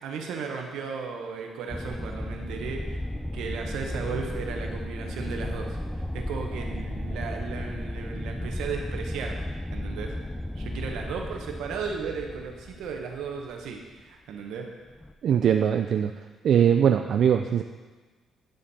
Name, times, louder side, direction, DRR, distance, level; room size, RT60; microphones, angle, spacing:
voice 1, 0.0-3.0 3.3-9.4 9.7-10.1 10.6-14.7, right 5 dB, 85° right, 2 dB, 1.1 m, -35 dB
sound 1, 1.7-13.8 14.9-15.1, left 1 dB, 5° left, 0.4 m, -34 dB
voice 2, 15.2-16.1 16.4-17.6, right 8 dB, 65° right, 6 dB, 0.3 m, -21 dB
10.5 x 5.2 x 4.2 m, 1.3 s
cardioid pair, 90°, 0 cm